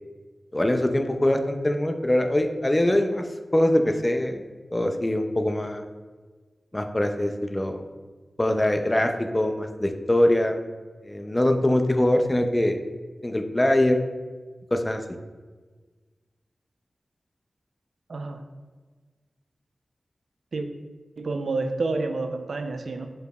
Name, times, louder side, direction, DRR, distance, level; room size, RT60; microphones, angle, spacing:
voice 1, 0.5-3.2 3.5-5.8 6.7-7.8 8.4-10.6 11.0-12.8 13.2-14.0 14.7-15.0, left 1 dB, 20° left, 5 dB, 0.4 m, -23 dB
voice 2, 18.1-18.4 20.5-20.7 21.2-23.1, right 3 dB, 80° right, 7 dB, 0.4 m, -29 dB
4.9 x 4.8 x 2.3 m, 1.4 s
wide cardioid pair, 100°, 0 cm